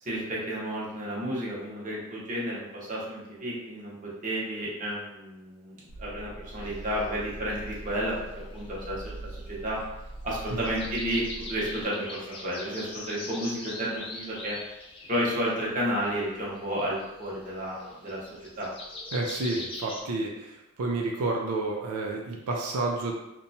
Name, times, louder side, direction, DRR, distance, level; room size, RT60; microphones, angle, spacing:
voice 1, 0.0-8.2 8.5-9.8 10.2-11.2 11.5-14.6 15.1-18.3 18.6-18.7, equal, 35° right, -6 dB, 0.8 m, -32 dB
sound 1, 5.9-11.8, right 2 dB, 80° left, 0.5 m, -42 dB
sound 2, 6.6-20.0, left 2 dB, 25° left, 0.4 m, -43 dB
voice 2, 19.1-23.1, right 2 dB, 85° right, 0 dB, 0.4 m, -30 dB
2.8 x 2.2 x 2.6 m, 0.93 s
head